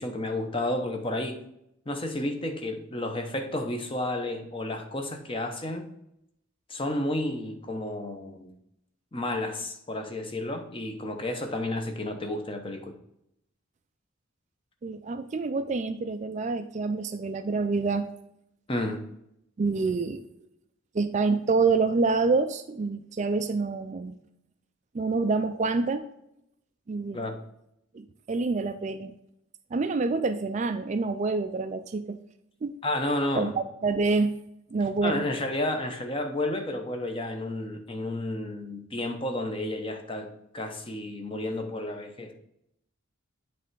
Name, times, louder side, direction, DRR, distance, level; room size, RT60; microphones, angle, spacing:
voice 1, 0.0-1.4 1.9-5.8 6.7-8.5 9.1-12.9 18.7-19.0 27.1-27.4 32.8-33.5 35.0-42.3, left 1 dB, 25° left, 5 dB, 0.8 m, -31 dB
voice 2, 14.8-18.1 19.6-20.2 20.9-24.1 24.9-26.0 26.9-27.2 27.9-29.1 29.7-32.2 32.6-32.7 33.4-34.4 34.7-35.2, right 4 dB, 35° right, 10 dB, 0.3 m, -27 dB
8.3 x 3.3 x 4.6 m, 0.78 s
head